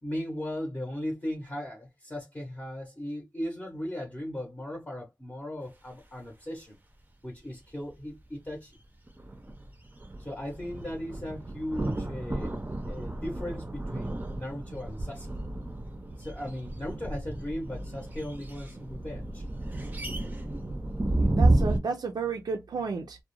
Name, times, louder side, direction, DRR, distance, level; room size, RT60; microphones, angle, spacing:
voice 1, 0.0-6.8 7.2-8.8 10.2-12.5 12.8-15.3 16.2-19.4, left 1 dB, 25° left, 0.7 m, -37 dB
sound 1, 9.1-21.8, right 2 dB, 25° right, 0.5 m, -31 dB
voice 2, 15.7-16.0 19.7-19.8 21.2-23.2, right 4 dB, 90° right, 0.4 m, -33 dB
2.3 x 2.1 x 3.0 m
wide cardioid pair, 70°, 7 cm